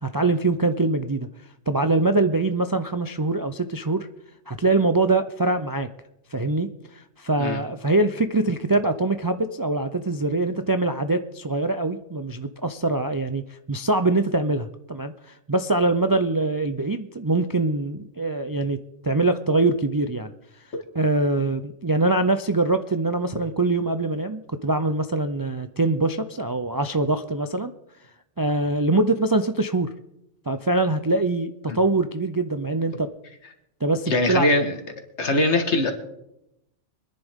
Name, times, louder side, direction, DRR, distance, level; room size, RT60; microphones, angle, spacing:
voice 1, 0.0-1.3 1.7-4.1 4.5-5.9 6.3-18.8 19.0-20.3 20.9-27.7 28.4-29.9 30.5-33.1 33.8-34.5 35.3-35.4, right 2 dB, 30° right, 9 dB, 0.3 m, -23 dB
voice 2, 34.1-34.8 35.2-35.9, left 2 dB, 75° left, 5 dB, 2.0 m, -21 dB
24.0 x 10.5 x 3.6 m, 0.86 s
omnidirectional pair, 1.2 m